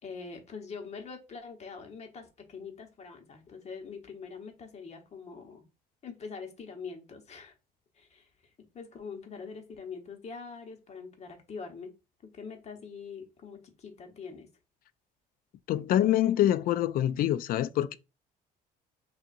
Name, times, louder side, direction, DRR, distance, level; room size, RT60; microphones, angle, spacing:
voice 1, 0.0-5.6 6.0-7.5 7.9-8.3 8.7-11.9 12.2-14.5, left 5 dB, 40° left, 1.2 m, -44 dB
voice 2, 15.7-18.0, left 12 dB, 60° left, 0.4 m, -25 dB
5.4 x 2.7 x 2.6 m
cardioid pair, 110°, 17 cm